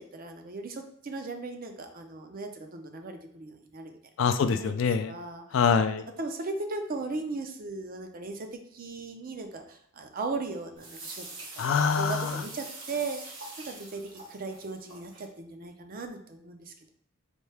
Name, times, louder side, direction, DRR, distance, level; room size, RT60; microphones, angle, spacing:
voice 1, 0.0-4.0 4.5-4.7 5.1-5.4 6.2-11.2 11.5-11.7 12.0-16.9, right 3 dB, 45° right, 5 dB, 0.5 m, -37 dB
voice 2, 4.2-5.2 5.5-6.0 11.6-12.4, left 6 dB, 70° left, 10 dB, 0.3 m, -25 dB
sound 1, 10.8-15.3, right 2 dB, 65° right, 1.2 m, -44 dB
4.3 x 2.7 x 3.3 m, 0.65 s
head